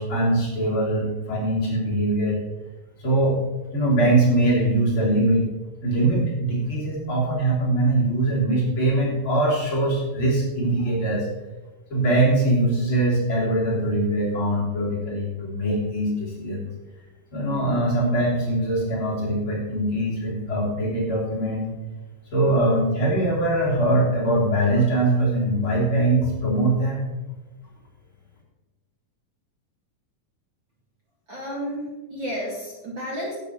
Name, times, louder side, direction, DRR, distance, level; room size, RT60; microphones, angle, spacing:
voice 1, 0.0-2.4 3.0-3.4 3.7-5.5 5.8-11.3 11.9-16.7 17.3-21.7 22.3-27.0, right 1 dB, 40° left, -5 dB, 3.9 m, -22 dB
voice 2, 31.3-33.4, equal, 40° right, -3 dB, 2.6 m, -32 dB
11.0 x 8.8 x 5.9 m, 1.1 s
omnidirectional pair, 3.9 m